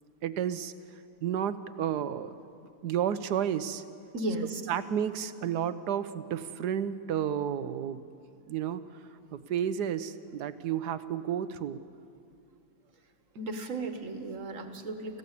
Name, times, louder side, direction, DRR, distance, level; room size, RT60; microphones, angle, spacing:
voice 1, 0.2-0.7 1.2-2.3 2.8-3.8 4.7-8.0 8.5-8.8 9.3-11.8, right 9 dB, 75° right, 13 dB, 1.4 m, -31 dB
voice 2, 4.1-4.6 13.3-15.2, right 2 dB, 50° right, 7 dB, 1.8 m, -35 dB
29.0 x 15.0 x 8.4 m, 2.6 s
omnidirectional pair, 1.8 m